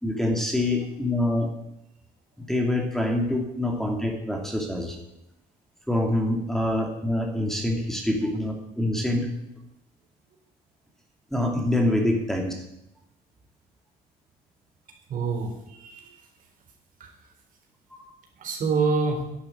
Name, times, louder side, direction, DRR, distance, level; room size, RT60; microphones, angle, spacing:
voice 1, 0.0-1.5 2.4-5.0 5.9-9.3 11.3-12.6 18.0-18.1, left 1 dB, ahead, 1 dB, 2.6 m, -25 dB
voice 2, 15.1-16.2 17.0-17.1 18.4-19.2, right 4 dB, 55° right, 3 dB, 3.8 m, -26 dB
10.5 x 9.4 x 8.5 m, 0.85 s
cardioid pair, 110°, 17 cm